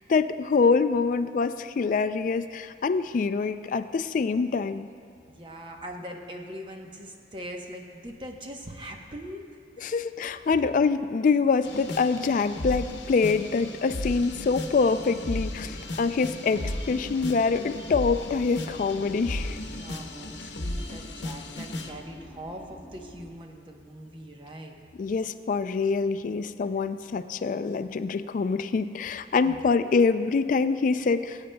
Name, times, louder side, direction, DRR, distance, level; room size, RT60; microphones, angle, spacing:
voice 1, 0.1-4.9 9.8-19.6 25.0-31.4, left 4 dB, 45° left, 12 dB, 0.3 m, -25 dB
voice 2, 5.3-9.4 9.8-9.9 10.5-10.6 19.6-24.7 29.4-29.6, equal, 25° right, 2 dB, 0.9 m, -41 dB
sound 1, 11.6-21.9, left 1 dB, 85° left, 0.9 m, -35 dB
sound 2, 14.2-23.3, equal, 20° left, 1.1 m, -47 dB
21.0 x 8.8 x 2.2 m, 2.4 s
head